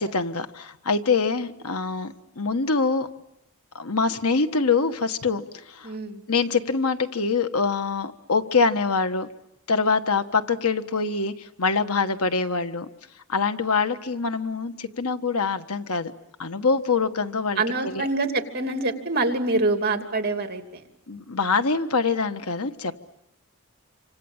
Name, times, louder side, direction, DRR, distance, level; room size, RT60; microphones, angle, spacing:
voice 1, 0.0-3.1 3.7-5.9 6.3-9.3 9.7-12.9 13.3-16.1 16.4-18.1 21.1-23.0, left 4 dB, 80° left, 9 dB, 1.5 m, -24 dB
voice 2, 5.8-6.2 17.6-20.8, right 2 dB, 45° right, 5 dB, 2.9 m, -25 dB
28.0 x 26.0 x 7.4 m, 0.85 s
head